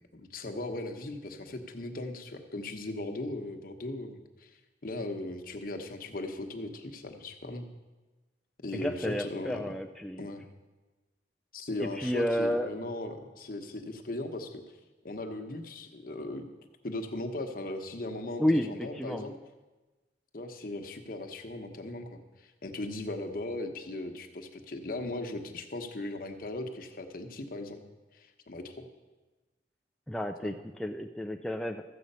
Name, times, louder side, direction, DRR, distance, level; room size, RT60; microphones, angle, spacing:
voice 1, 0.1-4.5 4.8-7.7 8.6-9.7 10.2-10.4 11.5-14.6 15.0-16.5 16.8-19.4 20.3-27.8 28.1-28.9 30.4-30.5, left 2 dB, 50° left, 5 dB, 1.0 m, -38 dB
voice 2, 8.7-10.3 11.8-12.7 18.4-19.3 30.1-31.8, equal, ahead, 3 dB, 0.3 m, -31 dB
13.5 x 7.7 x 5.5 m, 1.2 s
head